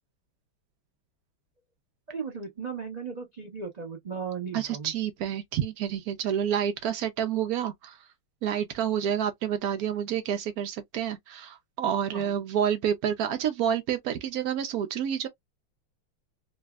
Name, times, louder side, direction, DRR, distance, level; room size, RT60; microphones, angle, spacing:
voice 1, 2.1-4.9 12.1-12.3, right 6 dB, 35° right, 0.6 m, -36 dB
voice 2, 4.5-8.1 8.4-15.3, right 9 dB, 85° right, 0.8 m, -29 dB
3.2 x 2.6 x 2.3 m
omnidirectional pair, 2.2 m